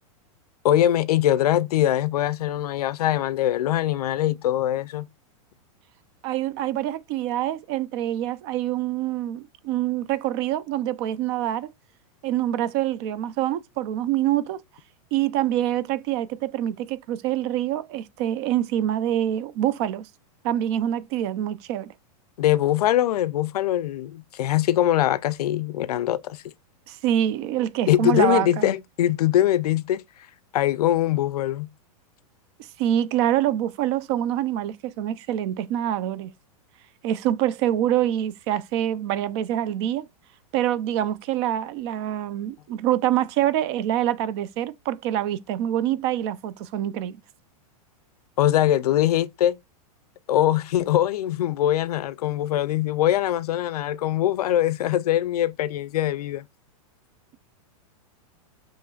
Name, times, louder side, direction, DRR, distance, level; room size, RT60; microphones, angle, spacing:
voice 1, 0.6-5.1 22.4-26.5 27.9-30.0 30.5-31.7 48.4-49.6 50.3-56.5, left 12 dB, 80° left, 0.4 m, -22 dB
voice 2, 6.2-11.7 12.2-14.6 15.1-20.1 20.4-21.9 26.9-28.7 32.8-36.3 37.0-40.0 40.5-47.2, right 12 dB, 45° right, 0.5 m, -25 dB
7.0 x 3.1 x 2.3 m
hypercardioid pair, 135°, 19 cm